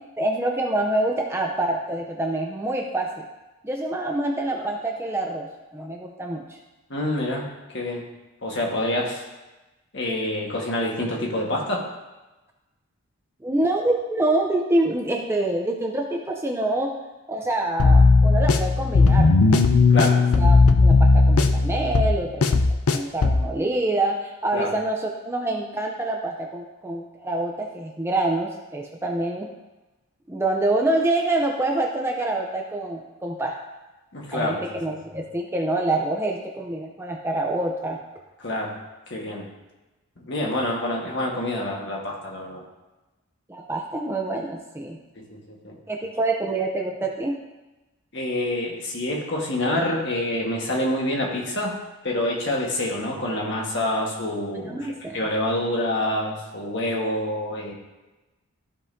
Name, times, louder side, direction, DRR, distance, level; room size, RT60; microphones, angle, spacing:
voice 1, 0.2-3.1 3.6-6.6 13.4-16.9 17.3-19.6 20.3-22.5 22.9-29.5 30.3-33.6 34.3-38.0 43.5-45.0 45.9-47.4 54.7-55.2, right 2 dB, 10° right, 1 dB, 0.5 m, -26 dB
voice 2, 6.9-7.5 7.7-8.0 8.4-9.2 9.9-11.9 19.9-20.2 24.5-24.7 34.1-34.9 38.4-38.8 39.1-39.5 40.2-42.6 45.2-45.8 48.1-51.7 52.0-57.7, left 1 dB, 50° left, -1 dB, 1.5 m, -27 dB
sound 1, 17.8-23.5, left 3 dB, 85° left, 0.5 m, -16 dB
13.5 x 5.4 x 2.7 m, 1.1 s
head